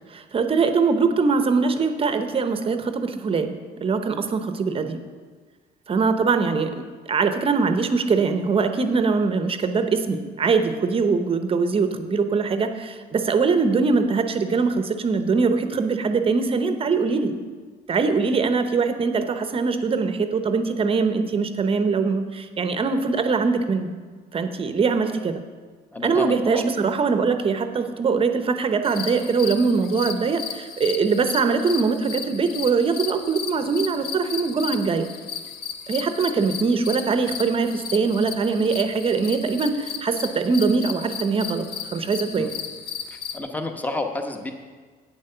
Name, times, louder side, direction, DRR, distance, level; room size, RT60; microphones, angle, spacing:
voice 1, 0.1-5.0 5.9-17.3 17.9-23.9 24.3-25.4 26.0-35.1 35.9-41.7 41.9-42.5, right 4 dB, 35° right, 8 dB, 0.7 m, -22 dB
voice 2, 25.9-26.6 42.3-42.5 43.1-44.5, left 2 dB, 10° left, 5 dB, 0.9 m, -30 dB
sound 1, 28.8-43.4, left 7 dB, 65° left, 0.7 m, -35 dB
8.6 x 7.6 x 5.6 m, 1.5 s
cardioid pair, 110°, 17 cm